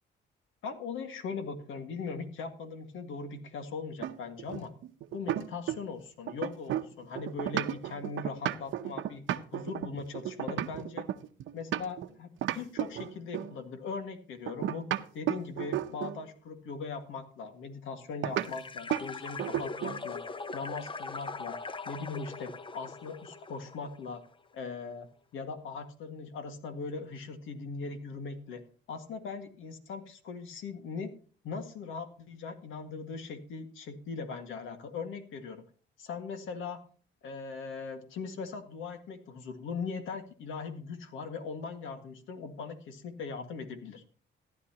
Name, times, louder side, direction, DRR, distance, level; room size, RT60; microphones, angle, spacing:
voice 1, 0.6-4.7 5.1-9.2 9.5-11.1 11.5-20.2 20.5-21.6 21.9-24.2 24.5-28.6 28.9-31.1 31.4-35.6 36.0-36.8 37.2-44.0, left 4 dB, 80° left, 7 dB, 1.9 m, -40 dB
sound 1, 4.0-6.0 6.3-12.1 12.4-13.6 14.5-16.2 18.2-18.5 18.9-19.1 19.4-20.0, right 12 dB, 75° right, 0.8 m, -33 dB
sound 2, 18.4-24.1, left 4 dB, 25° left, 0.7 m, -41 dB
15.0 x 11.0 x 2.9 m, 0.41 s
cardioid pair, 90°, 20 cm